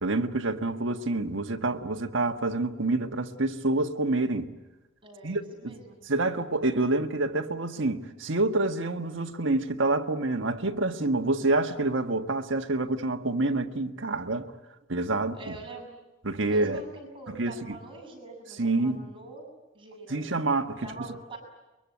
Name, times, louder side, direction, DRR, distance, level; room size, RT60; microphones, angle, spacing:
voice 1, 0.0-4.5 5.2-5.7 6.1-14.5 14.9-15.4 16.2-16.8 17.4-17.8 18.6-19.0 20.1-20.9, right 2 dB, 70° right, 1.5 m, -27 dB
voice 2, 5.0-6.0 15.4-15.9 16.4-19.4 19.7-20.2 20.8-21.4, right 2 dB, 25° right, 6.8 m, -44 dB
23.5 x 23.0 x 9.6 m
head